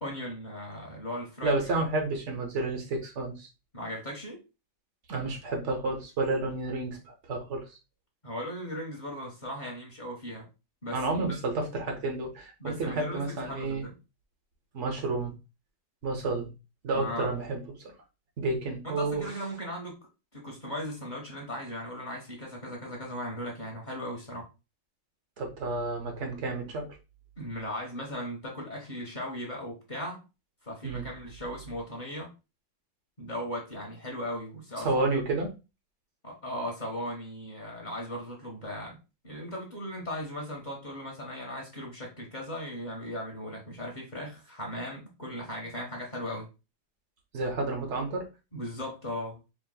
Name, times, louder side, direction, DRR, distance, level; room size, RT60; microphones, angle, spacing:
voice 1, 0.0-1.6 3.7-4.4 8.2-10.5 10.8-11.4 12.6-13.9 16.9-17.3 18.8-20.0 20.3-24.5 27.4-30.2 30.6-32.3 33.2-35.0 36.2-39.0 39.2-46.5 48.5-49.4, equal, 30° left, -2 dB, 0.9 m, -37 dB
voice 2, 1.4-3.5 5.1-7.7 10.9-13.8 14.7-15.3 16.0-16.5 16.8-17.6 18.4-19.2 25.4-26.9 30.8-31.1 34.8-35.5 47.3-48.3, right 2 dB, 50° right, 3 dB, 0.9 m, -30 dB
5.0 x 3.0 x 2.2 m, 0.28 s
omnidirectional pair, 2.2 m